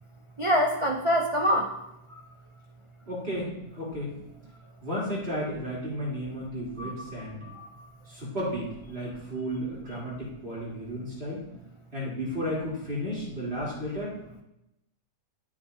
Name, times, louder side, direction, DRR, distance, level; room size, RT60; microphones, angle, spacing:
voice 1, 0.4-1.7 2.1-2.2 6.8-7.9, equal, 55° right, 1 dB, 0.3 m, -27 dB
voice 2, 3.1-4.1 4.8-7.4 8.1-11.4 11.9-14.2, equal, 35° right, -7 dB, 3.7 m, -33 dB
12.5 x 7.8 x 2.8 m, 0.87 s
omnidirectional pair, 1.8 m